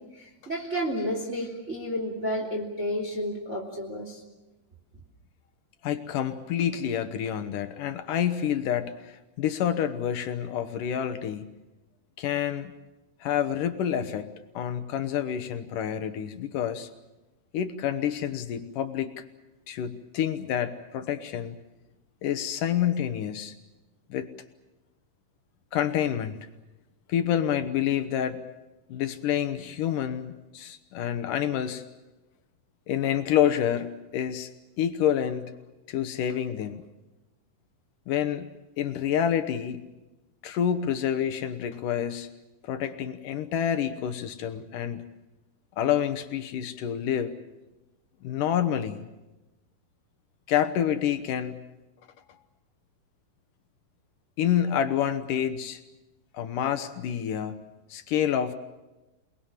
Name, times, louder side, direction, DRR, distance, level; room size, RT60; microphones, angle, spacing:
voice 1, 0.1-4.2, equal, 20° right, 1 dB, 2.9 m, -31 dB
voice 2, 5.8-11.5 12.2-12.7 13.2-16.9 17.5-19.2 19.7-21.6 22.2-23.5 24.1-24.3 25.7-26.5 27.1-28.4 28.9-31.8 32.9-34.5 34.8-35.5 35.9-36.8 38.1-38.5 38.8-39.9 40.4-42.3 42.6-45.0 45.8-47.3 48.2-49.1 50.5-51.6 54.4-55.8 56.3-57.6 57.9-58.5, left 9 dB, 70° left, 10 dB, 2.3 m, -28 dB
28.5 x 21.0 x 7.4 m, 1.1 s
omnidirectional pair, 4.4 m